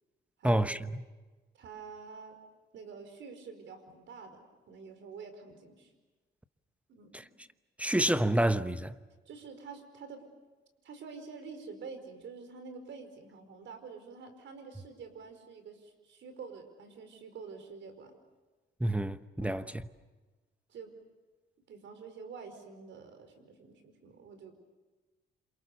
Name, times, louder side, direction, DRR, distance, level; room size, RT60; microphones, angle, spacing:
voice 1, 0.4-1.0 7.1-7.2 7.8-8.9 18.8-19.8, right 1 dB, 5° right, 1.0 m, -28 dB
voice 2, 1.5-2.4 2.7-5.9 6.9-7.3 9.3-10.2 10.8-18.1 19.4-19.7 20.7-20.9 21.7-24.5, right 5 dB, 70° right, 5.0 m, -47 dB
27.5 x 27.5 x 7.1 m
cardioid pair, 90°, 20 cm